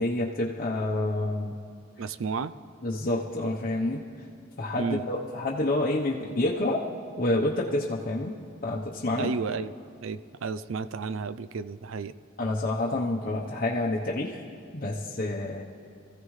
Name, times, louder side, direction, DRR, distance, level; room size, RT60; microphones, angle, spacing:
voice 1, 0.0-1.5 2.8-4.0 4.6-6.8 7.2-8.3 8.6-9.3 12.4-14.4 14.7-15.6, left 2 dB, 45° left, -4 dB, 0.9 m, -28 dB
voice 2, 2.0-2.5 4.8-5.0 9.2-9.7 10.0-12.1, right 5 dB, 85° right, 14 dB, 0.5 m, -32 dB
24.5 x 15.0 x 3.2 m, 2.3 s
head